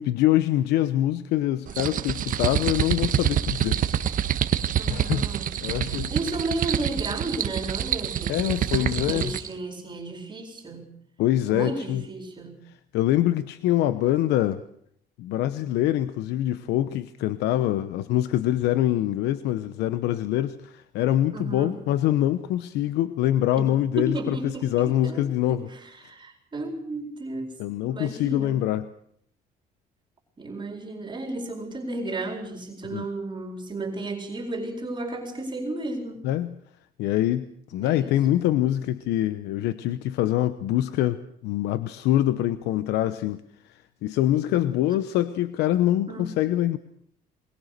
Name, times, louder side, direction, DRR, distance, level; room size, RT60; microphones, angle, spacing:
voice 1, 0.0-3.8 4.9-5.3 5.6-6.1 8.3-9.4 11.2-12.0 12.9-14.6 15.2-25.7 27.6-28.9 32.9-33.1 36.2-36.5 37.0-46.8, left 13 dB, 85° left, 13 dB, 0.9 m, -24 dB
sound 1, 1.7-9.5, right 10 dB, 55° right, 1.4 m, -26 dB
voice 2, 4.8-10.9 11.5-12.6 21.3-21.8 23.6-23.7 24.1-27.6 27.9-28.6 30.4-36.2 37.8-38.2 46.1-46.3, right 2 dB, 30° right, 3 dB, 4.4 m, -34 dB
21.5 x 21.5 x 6.7 m, 0.69 s
cardioid pair, 110°, 17 cm